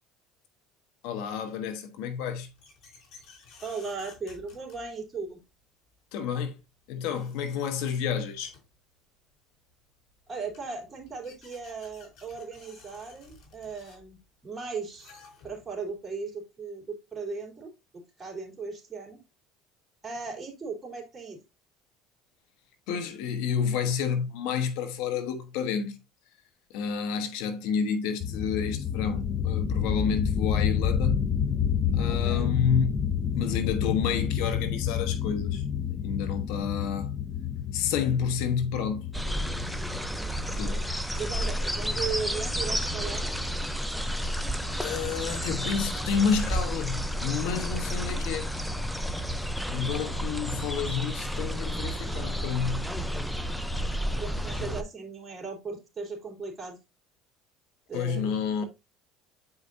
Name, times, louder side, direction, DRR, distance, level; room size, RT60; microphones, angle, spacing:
voice 1, 1.0-2.5 6.1-6.6 6.9-8.5 22.9-26.0 26.7-31.3 31.9-33.0 33.3-35.6 35.9-37.1 37.7-39.0 40.5-40.8 44.8-48.5 49.7-52.9 57.9-58.6, left 7 dB, 75° left, 1.2 m, -30 dB
sound 1, 2.1-5.3 6.6-6.7 7.0-8.8 10.0-10.1 10.3-15.8, left 4 dB, 60° left, 3.9 m, -55 dB
voice 2, 3.6-5.4 10.3-15.1 15.4-17.7 18.2-19.2 20.0-21.4 32.0-32.5 33.4-33.6 40.4-40.8 41.1-43.2 49.9-50.3 54.2-56.8 57.9-58.3, right 4 dB, 20° right, 3.3 m, -37 dB
sound 2, 28.2-40.6, left 8 dB, 40° left, 0.7 m, -29 dB
sound 3, 39.1-54.8, equal, ahead, 0.7 m, -31 dB
9.3 x 4.9 x 2.7 m
supercardioid pair, 100°, 0 cm